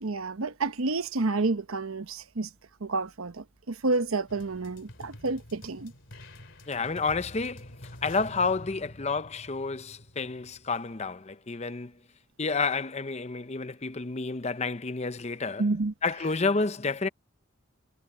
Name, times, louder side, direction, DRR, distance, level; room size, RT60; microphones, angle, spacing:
voice 1, 0.0-2.5 2.8-5.9 15.6-15.9, right 3 dB, 85° right, 1.0 m, -29 dB
sound 1, 4.3-10.8, left 1 dB, 60° left, 3.1 m, -48 dB
voice 2, 6.7-7.7 8.0-12.0 12.4-15.6 16.0-17.1, left 4 dB, 30° left, 0.7 m, -30 dB
head